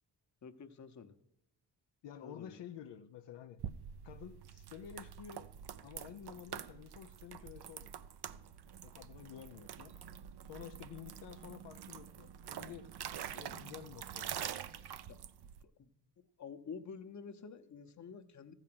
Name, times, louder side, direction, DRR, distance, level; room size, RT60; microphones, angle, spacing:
voice 1, 0.4-1.2 2.2-2.6 15.1-15.2 15.8-15.9 16.4-18.5, left 6 dB, 40° left, 0.9 m, -49 dB
voice 2, 2.0-3.6 4.0-5.5 5.8-7.9 8.8-10.0 10.5-12.9 13.3-14.3, left 9 dB, 80° left, 0.6 m, -51 dB
sound 1, 3.6-15.6, right 9 dB, 65° right, 0.6 m, -46 dB
14.5 x 4.9 x 7.7 m
cardioid pair, 90°, 42 cm